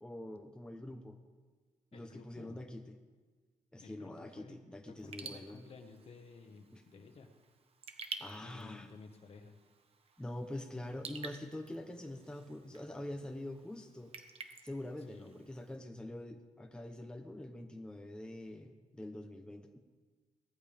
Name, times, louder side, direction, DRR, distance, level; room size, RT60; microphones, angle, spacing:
voice 1, 0.0-1.2 1.9-3.0 3.7-5.6 6.7-6.8 8.2-8.9 10.2-14.1 14.6-19.8, left 1 dB, 5° left, 4 dB, 0.9 m, -45 dB
voice 2, 1.9-2.6 3.8-4.6 4.9-7.3 8.4-9.5 15.1-15.4, left 4 dB, 50° left, 6 dB, 1.6 m, -53 dB
Raindrop / Drip, 5.0-15.8, right 5 dB, 45° right, 1.3 m, -51 dB
19.0 x 14.0 x 3.6 m, 1.4 s
cardioid pair, 115°, 14 cm